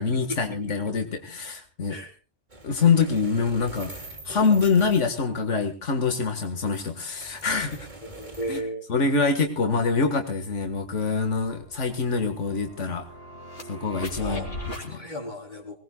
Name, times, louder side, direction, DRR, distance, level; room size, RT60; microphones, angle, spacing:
voice 1, 0.0-2.0 2.6-3.9 4.3-7.9 8.5-8.6 8.9-13.1 13.7-14.4 14.8-15.0, left 4 dB, 85° left, 6 dB, 2.0 m, -25 dB
sound 1, 2.5-5.1 6.3-8.6, right 2 dB, 40° right, 2.8 m, -43 dB
voice 2, 8.0-8.9 9.6-10.0 14.2-15.8, equal, 40° left, 3 dB, 3.8 m, -35 dB
sound 2, 9.5-9.6 9.9-14.9, left 1 dB, 55° left, 3.3 m, -40 dB
24.5 x 18.5 x 2.3 m, 0.33 s
omnidirectional pair, 1.2 m